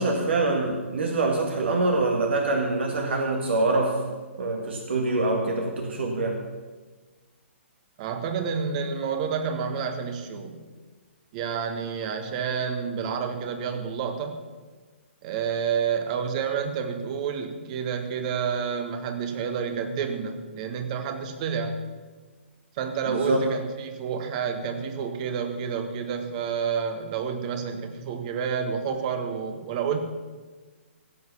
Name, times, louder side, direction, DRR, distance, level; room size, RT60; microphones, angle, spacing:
voice 1, 0.0-4.0 4.4-6.4 23.1-23.5, right 2 dB, 60° right, 2 dB, 1.9 m, -25 dB
voice 2, 8.0-10.6 11.3-14.4 15.2-21.8 22.7-30.0, right 6 dB, 35° right, 7 dB, 1.6 m, -29 dB
15.5 x 8.1 x 7.0 m, 1.3 s
figure-of-eight pair, 125°, 7 cm